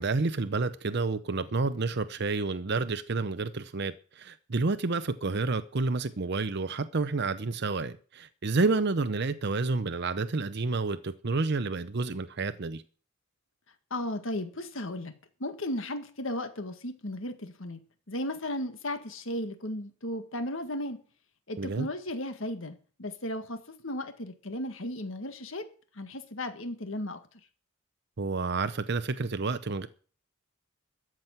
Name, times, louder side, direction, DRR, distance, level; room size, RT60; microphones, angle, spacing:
voice 1, 0.0-12.8 21.6-21.9 28.2-29.9, right 3 dB, 50° right, 0.7 m, -29 dB
voice 2, 13.9-15.1 15.4-17.8 18.1-21.0 21.5-25.7 25.9-27.2, left 1 dB, 65° left, 1.8 m, -35 dB
13.5 x 6.2 x 9.0 m
head